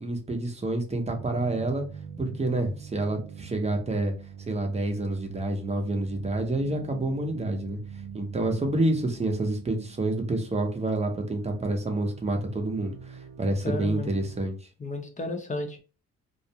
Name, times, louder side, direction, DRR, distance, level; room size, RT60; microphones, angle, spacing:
voice 1, 0.0-1.8 2.2-4.1 4.5-7.8 8.1-14.5, right 2 dB, 20° right, 4 dB, 0.7 m, -28 dB
sound 1, 1.1-11.0 11.3-14.5, right 7 dB, 60° right, 0.5 m, -43 dB
voice 2, 13.6-14.1 14.8-15.8, left 2 dB, 25° left, 3 dB, 0.7 m, -33 dB
2.4 x 2.1 x 2.8 m, 0.35 s
cardioid pair, 90°, 30 cm